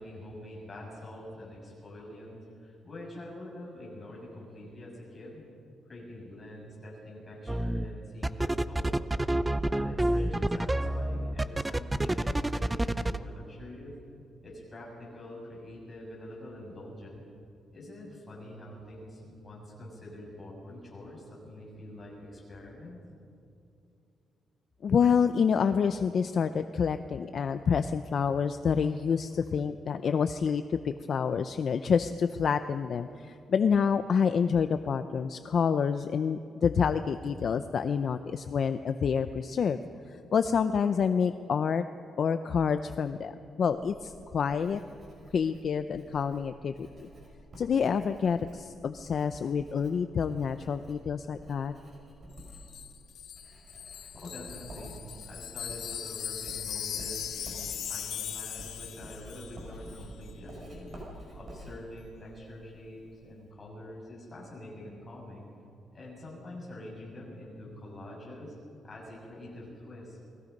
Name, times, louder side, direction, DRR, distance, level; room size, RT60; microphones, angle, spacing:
voice 1, 0.0-5.4 5.9-8.9 9.7-13.9 14.4-17.3 17.7-23.0 54.2-61.0 61.3-65.5 65.9-68.5 68.8-70.2, left 1 dB, 20° left, -4 dB, 6.7 m, -45 dB
sound 1, 7.5-7.8 8.2-13.2, right 1 dB, 10° right, 0.5 m, -28 dB
voice 2, 24.8-39.8 40.3-41.8 42.2-43.3 43.6-44.8 45.3-47.1 47.6-51.7, left 6 dB, 45° left, 10 dB, 0.6 m, -28 dB
Writing, 43.7-63.2, right 1 dB, 35° right, 6.2 m, -50 dB
Wind chime, 52.4-59.6 59.9-60.1, left 9 dB, 70° left, 1.2 m, -39 dB
29.5 x 21.5 x 5.3 m, 2.6 s
wide cardioid pair, 175°, 0 cm